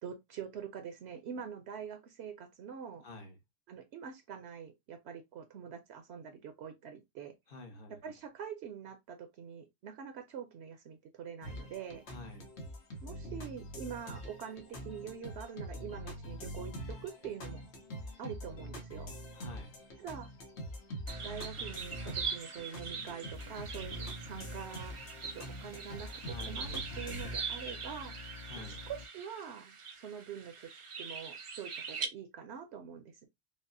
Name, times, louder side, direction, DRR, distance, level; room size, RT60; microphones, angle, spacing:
voice 1, 0.0-3.0 3.7-7.3 8.0-12.0 13.0-17.6 18.2-19.2 20.0-20.3 21.2-26.1 26.5-33.3, right 7 dB, 75° right, 0.8 m, -45 dB
voice 2, 3.0-3.4 7.5-8.0 12.1-12.5 19.3-19.7 22.9-23.1 23.4-23.6 26.2-27.0 28.4-28.8, left 2 dB, 55° left, 1.2 m, -49 dB
sound 1, 11.4-27.4, equal, 90° left, 1.2 m, -44 dB
sound 2, 21.1-32.1, right 5 dB, 50° right, 0.4 m, -42 dB
sound 3, 23.3-29.1, left 5 dB, 40° left, 0.4 m, -51 dB
5.2 x 2.1 x 2.5 m
omnidirectional pair, 1.1 m